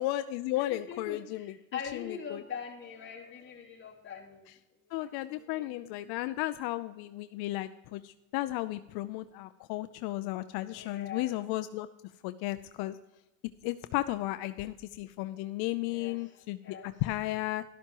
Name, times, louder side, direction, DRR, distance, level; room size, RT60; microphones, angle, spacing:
voice 1, 0.0-2.4 4.9-11.9 12.2-13.0 13.6-17.6, left 16 dB, 80° left, 11 dB, 0.6 m, -34 dB
voice 2, 0.6-4.5 4.9-5.8 10.7-11.4 15.8-16.9, left 7 dB, 30° left, -2 dB, 2.6 m, -43 dB
13.0 x 12.0 x 2.9 m, 1.0 s
cardioid pair, 125°, 38 cm